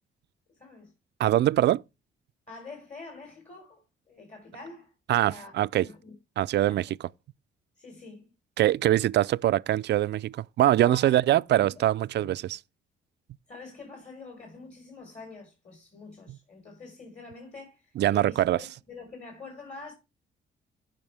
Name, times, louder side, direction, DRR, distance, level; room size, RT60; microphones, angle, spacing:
voice 1, 0.6-0.9 2.5-6.1 6.7-6.8 7.8-8.3 10.8-11.2 11.6-11.9 12.1-12.3 13.5-19.9, left 3 dB, 35° left, 4.3 m, -46 dB
voice 2, 1.2-1.8 5.1-5.9 6.4-7.0 8.6-12.6 18.0-18.7, right 13 dB, 60° right, 0.4 m, -23 dB
15.5 x 5.9 x 3.4 m
cardioid pair, 90°, 20 cm